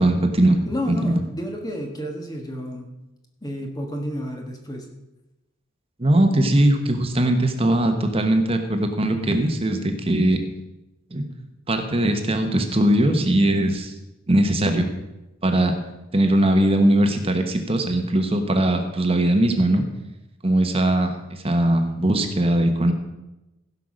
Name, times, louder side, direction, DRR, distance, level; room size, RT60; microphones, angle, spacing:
voice 1, 0.0-0.6 0.9-1.2 6.0-10.4 11.1-11.3 11.7-13.9 14.3-14.9 15.4-15.7 16.1-19.8 20.4-21.1 21.4-22.9, right 1 dB, 30° right, 6 dB, 1.2 m, -20 dB
voice 2, 0.6-2.9 3.4-4.9, equal, 20° left, 2 dB, 1.4 m, -30 dB
16.0 x 5.7 x 6.4 m, 0.97 s
head